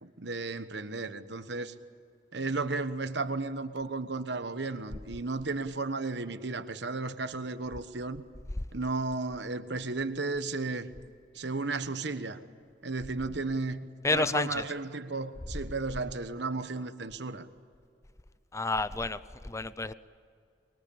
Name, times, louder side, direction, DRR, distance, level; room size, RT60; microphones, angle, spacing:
voice 1, 0.0-1.7 2.3-8.3 8.7-10.9 11.3-12.4 12.8-17.5, right 3 dB, 70° right, 1.3 m, -34 dB
voice 2, 14.0-14.6 18.5-19.9, left 3 dB, 15° left, 0.6 m, -30 dB
24.5 x 23.0 x 8.7 m
head